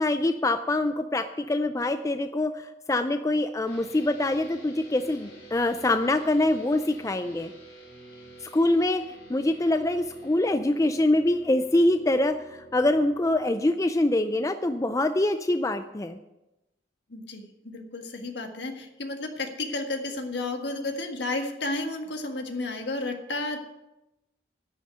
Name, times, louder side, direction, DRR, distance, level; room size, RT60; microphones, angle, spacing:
voice 1, 0.0-7.5 8.5-16.2, left 1 dB, 15° left, 9 dB, 0.4 m, -24 dB
sound 1, 3.7-13.4, right 2 dB, 90° left, 5.0 m, -49 dB
voice 2, 17.1-23.6, left 2 dB, 65° left, 4 dB, 1.6 m, -32 dB
11.0 x 6.5 x 8.9 m, 0.96 s
head